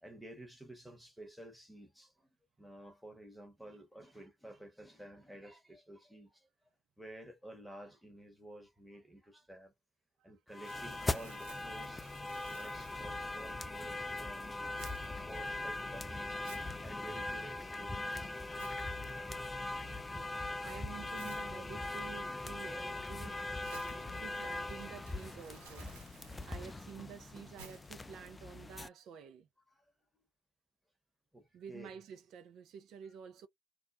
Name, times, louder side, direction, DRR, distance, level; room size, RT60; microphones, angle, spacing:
voice 1, 0.0-2.3 2.6-6.5 7.0-9.7 10.2-14.7 15.0-16.3 16.7-18.3 30.1-30.2 31.3-31.9, right 1 dB, ahead, 1.1 m, -52 dB
sound 1, 10.5-28.9, left 2 dB, 20° left, 0.3 m, -41 dB
Crumpling crinkling, 10.6-28.3, right 3 dB, 80° right, 1.0 m, -60 dB
voice 2, 20.1-26.0 26.2-29.5 31.5-33.5, right 7 dB, 60° right, 0.5 m, -50 dB
2.3 x 2.1 x 2.5 m
hypercardioid pair, 70°, 0 cm